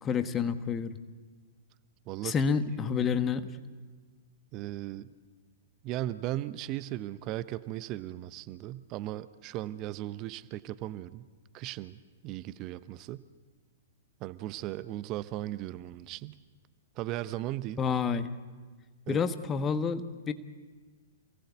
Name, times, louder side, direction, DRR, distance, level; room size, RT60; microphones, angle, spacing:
voice 1, 0.0-1.0 2.2-3.5 17.8-18.3 19.1-20.3, left 6 dB, 20° left, 11 dB, 1.5 m, -29 dB
voice 2, 2.1-2.9 4.5-5.1 5.8-11.3 11.5-13.2 14.2-16.4 17.0-17.8 19.1-19.2, right 14 dB, 30° right, 15 dB, 0.8 m, -37 dB
28.5 x 18.5 x 8.2 m, 1.4 s
figure-of-eight pair, 110°, 0 cm